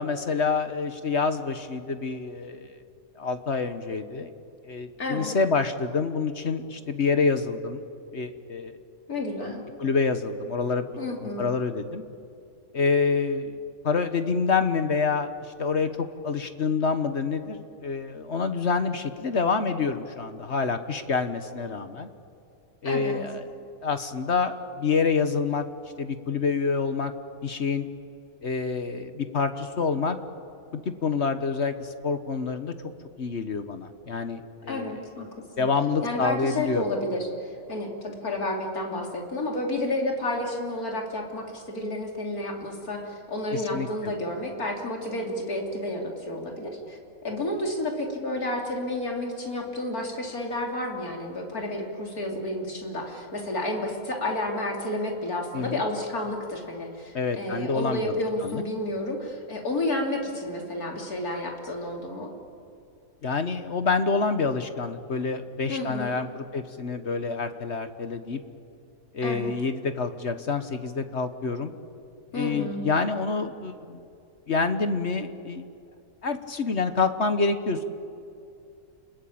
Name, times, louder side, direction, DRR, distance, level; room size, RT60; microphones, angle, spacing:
voice 1, 0.0-2.8 3.2-4.3 4.6-7.8 8.1-8.7 9.8-10.9 11.2-12.0 12.7-13.6 13.8-15.3 15.6-22.1 22.8-23.5 23.8-25.6 26.0-27.1 27.4-27.9 28.4-30.2 30.7-32.7 33.2-35.0 35.6-36.8 43.5-43.9 55.5-55.8 57.1-58.1 58.4-58.6 63.2-68.4 69.1-71.7 72.3-74.0 74.5-75.6 76.2-77.8, left 4 dB, 50° left, 9 dB, 1.4 m, -27 dB
voice 2, 5.0-5.3 9.1-9.6 11.0-11.5 22.8-23.2 34.7-35.3 35.6-35.7 36.0-47.0 47.2-62.3 65.7-66.2 69.2-69.5 72.3-72.8, left 1 dB, 85° left, 1 dB, 3.8 m, -31 dB
30.0 x 21.5 x 8.7 m, 2.5 s
omnidirectional pair, 1.5 m